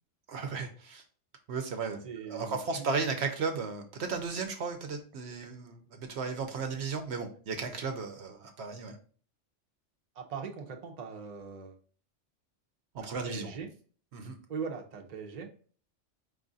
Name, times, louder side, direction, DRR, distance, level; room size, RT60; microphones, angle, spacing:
voice 1, 0.3-1.0 1.5-9.0 12.9-13.5 14.1-14.3, right 4 dB, 65° right, 5 dB, 0.9 m, -35 dB
voice 2, 2.0-2.8 10.1-11.8 13.0-13.7 14.5-15.5, right 6 dB, 40° right, 2 dB, 0.7 m, -40 dB
4.8 x 2.5 x 3.8 m, 0.43 s
omnidirectional pair, 1.3 m